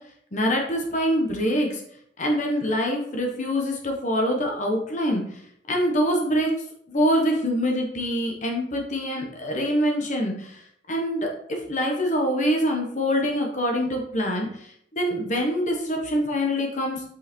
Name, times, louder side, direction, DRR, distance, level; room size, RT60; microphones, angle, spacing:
voice 1, 0.3-1.8 2.2-5.4 5.7-6.5 6.9-10.6 10.9-17.0, equal, 40° left, 1 dB, 1.2 m, -25 dB
5.7 x 5.6 x 4.4 m, 0.70 s
head